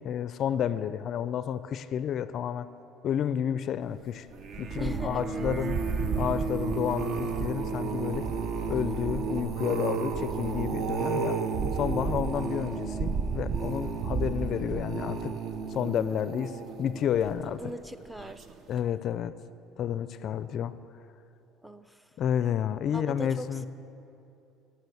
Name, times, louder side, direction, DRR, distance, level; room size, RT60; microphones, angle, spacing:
voice 1, 0.0-2.7 3.0-4.3 4.6-5.8 6.2-8.3 8.7-11.4 11.7-15.3 15.7-17.6 18.7-19.4 19.8-20.8 22.2-23.7, left 9 dB, 50° left, 14 dB, 0.4 m, -30 dB
sound 1, 4.3-17.7 18.2-18.5 18.8-18.9, right 5 dB, 50° right, 0.7 m, -32 dB
voice 2, 4.8-5.5 17.6-18.5 21.6-22.0 22.9-23.7, equal, 5° right, 10 dB, 0.5 m, -40 dB
9.1 x 9.1 x 8.1 m, 2.8 s
supercardioid pair, 95°, 0 cm